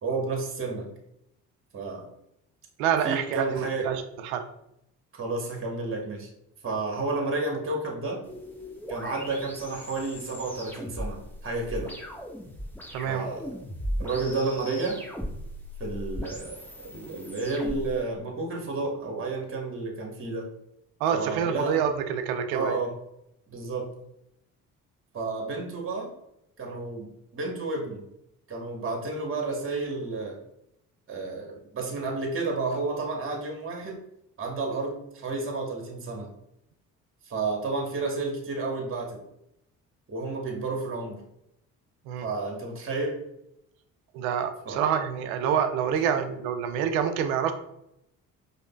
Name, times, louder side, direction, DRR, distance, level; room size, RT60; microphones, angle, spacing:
voice 1, 0.0-0.9 1.7-2.1 3.0-3.9 5.2-6.3 6.6-8.2 8.9-12.0 13.1-13.5 14.0-15.0 15.8-20.5 21.1-21.8 22.5-23.0 23.5-24.0 25.1-26.1 26.6-28.0 28.5-30.4 31.1-34.0 34.4-36.3 37.2-39.2 40.1-41.2 42.2-43.2 44.6-44.8, right 3 dB, 30° right, 0 dB, 1.1 m, -31 dB
voice 2, 2.8-4.4 12.9-13.3 21.0-22.8 42.0-42.3 44.1-47.5, right 8 dB, 80° right, 8 dB, 0.5 m, -27 dB
sound 1, 8.2-18.0, equal, 5° left, 1.0 m, -38 dB
5.0 x 2.1 x 2.2 m, 0.81 s
hypercardioid pair, 50°, 41 cm